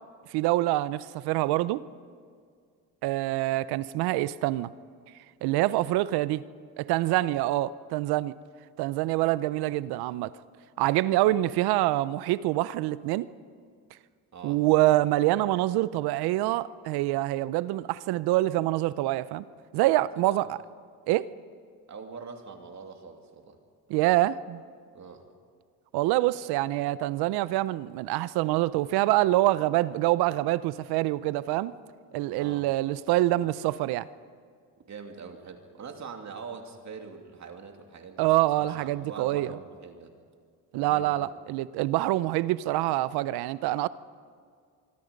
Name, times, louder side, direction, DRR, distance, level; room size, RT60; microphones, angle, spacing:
voice 1, 0.3-1.8 3.0-4.7 5.4-6.4 6.8-8.3 8.8-10.3 10.8-13.3 14.4-19.4 19.7-20.6 21.1-21.3 23.9-24.6 25.9-31.7 32.1-34.1 38.2-39.5 40.7-43.9, right 16 dB, 85° right, 17 dB, 0.7 m, -25 dB
voice 2, 21.9-23.6 24.9-25.3 32.4-32.7 34.9-38.3 38.6-40.1 40.7-41.3, right 5 dB, 50° right, 4 dB, 2.8 m, -43 dB
24.5 x 23.5 x 5.3 m, 2.1 s
supercardioid pair, 85°, 37 cm